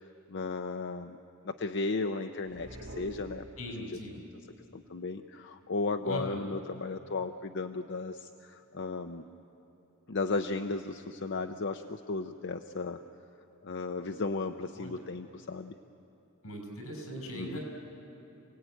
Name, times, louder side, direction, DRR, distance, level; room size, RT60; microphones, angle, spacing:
voice 1, 0.3-1.2 1.4-4.3 4.7-9.2 10.1-13.0 13.6-15.7 17.3-17.6, left 3 dB, 55° left, 7 dB, 0.7 m, -35 dB
sound 1, 2.5-4.0, right 1 dB, 85° right, 3.8 m, -46 dB
voice 2, 3.6-4.2 6.1-6.5 14.8-15.0 16.4-17.6, equal, 80° left, 2 dB, 6.2 m, -40 dB
28.5 x 18.5 x 9.2 m, 2.9 s
head